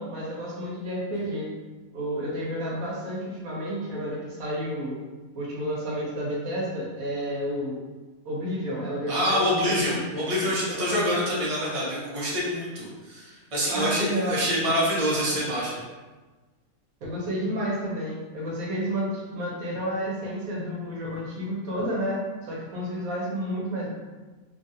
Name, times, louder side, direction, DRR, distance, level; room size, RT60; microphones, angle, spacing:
voice 1, 0.0-1.5 1.9-4.9 5.3-7.8 8.2-10.3 10.7-11.0 13.7-14.4 17.0-23.9, equal, 80° right, -5 dB, 1.3 m, -31 dB
voice 2, 9.1-15.8, equal, 30° right, -7 dB, 0.8 m, -26 dB
3.1 x 2.5 x 2.7 m, 1.3 s
omnidirectional pair, 1.5 m